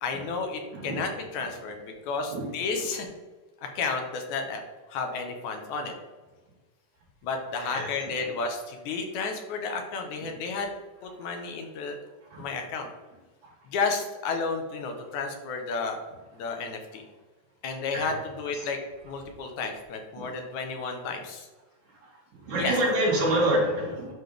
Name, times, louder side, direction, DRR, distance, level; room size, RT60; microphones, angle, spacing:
voice 1, 0.0-3.1 3.8-4.6 4.9-5.9 7.2-10.7 11.0-12.0 12.4-12.9 13.7-16.0 16.3-17.0 17.6-18.8 19.0-21.5 22.5-22.8, left 4 dB, 90° left, 4 dB, 2.4 m, -32 dB
voice 2, 22.5-24.1, right 1 dB, 85° right, -5 dB, 4.0 m, -26 dB
11.0 x 4.1 x 3.4 m, 1.3 s
omnidirectional pair, 3.3 m